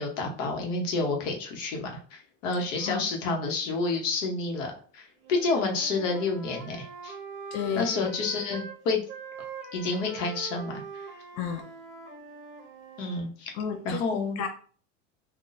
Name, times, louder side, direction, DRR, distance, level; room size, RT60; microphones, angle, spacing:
voice 1, 0.0-7.1 7.7-9.0 9.7-11.1 13.0-13.5 13.8-14.4, left 3 dB, 75° left, 1.1 m, -29 dB
Wind instrument woodwind instrument, 5.2-8.8 9.1-13.3, right 4 dB, 30° right, 0.9 m, -43 dB
voice 2, 7.5-8.2 11.4-11.6 13.5-14.0 14.4-14.5, left 7 dB, 45° left, 0.5 m, -32 dB
3.9 x 2.4 x 2.6 m
supercardioid pair, 115°, 38 cm